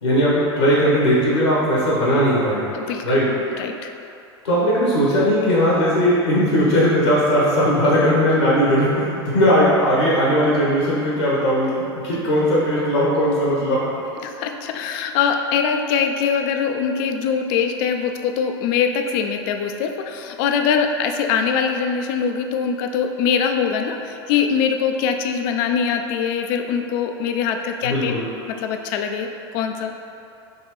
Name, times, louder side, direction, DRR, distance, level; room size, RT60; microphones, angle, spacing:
voice 1, 0.0-2.7 3.0-3.3 4.4-13.8 27.8-28.2, equal, 80° left, -7 dB, 1.1 m, -18 dB
voice 2, 2.7-3.2 3.6-3.9 14.2-28.1 28.5-29.3 29.5-29.9, left 6 dB, 55° left, 5 dB, 0.4 m, -22 dB
5.3 x 3.1 x 3.1 m, 2.7 s
hypercardioid pair, 85°, 14 cm